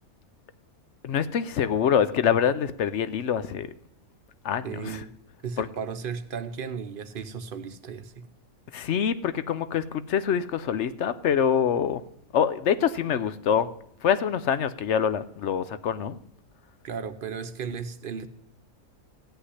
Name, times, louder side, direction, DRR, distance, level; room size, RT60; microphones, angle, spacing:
voice 1, 1.0-3.7 4.4-5.0 5.6-5.7 8.7-12.0 12.3-13.7 14.0-16.2, left 8 dB, 60° left, 14 dB, 0.9 m, -25 dB
voice 2, 4.6-5.1 5.4-8.3 16.8-18.3, right 6 dB, 45° right, 10 dB, 0.9 m, -35 dB
15.5 x 5.8 x 9.9 m, 0.71 s
omnidirectional pair, 1.5 m